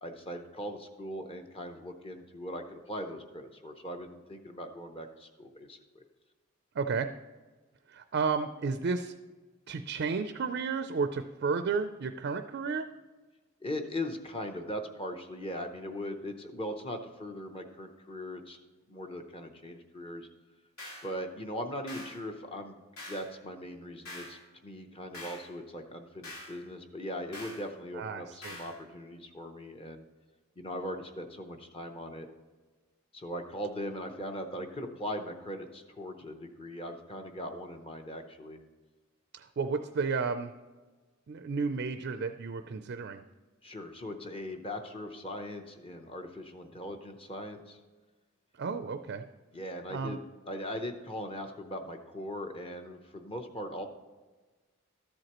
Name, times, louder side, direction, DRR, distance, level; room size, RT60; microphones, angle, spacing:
voice 1, 0.0-6.0 13.6-18.6 18.9-20.3 21.0-22.8 23.1-30.0 30.6-32.3 33.1-38.6 43.6-47.8 49.5-53.9, left 1 dB, 25° left, 5 dB, 0.7 m, -40 dB
voice 2, 6.7-7.1 7.9-9.1 9.7-12.9 27.9-28.6 39.3-40.5 41.3-43.2 48.6-49.2 49.9-50.2, right 5 dB, 50° right, 9 dB, 0.4 m, -32 dB
sound 1, 20.8-21.1 21.9-22.2 23.0-23.3 24.0-24.4 25.1-25.5 26.2-26.6 27.3-27.6 28.4-28.7, left 1 dB, 75° left, 2.9 m, -44 dB
13.0 x 7.8 x 3.0 m, 1.3 s
head